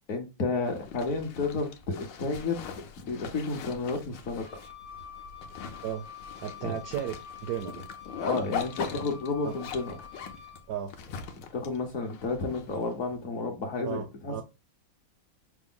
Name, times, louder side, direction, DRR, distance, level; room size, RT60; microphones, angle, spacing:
voice 1, 0.1-2.6 3.0-4.6 6.6-6.7 8.2-9.9 11.5-14.4, left 3 dB, 55° left, 1.0 m, -31 dB
Zipper (clothing), 0.6-13.1, left 7 dB, 75° left, 1.3 m, -41 dB
Wind instrument woodwind instrument, 4.4-10.7, left 7 dB, 50° right, 0.4 m, -47 dB
voice 2, 6.4-7.1 7.4-7.9 9.4-9.5 10.7-10.9 13.8-14.4, right 9 dB, 75° right, 0.8 m, -34 dB
5.9 x 2.1 x 3.6 m
omnidirectional pair, 2.1 m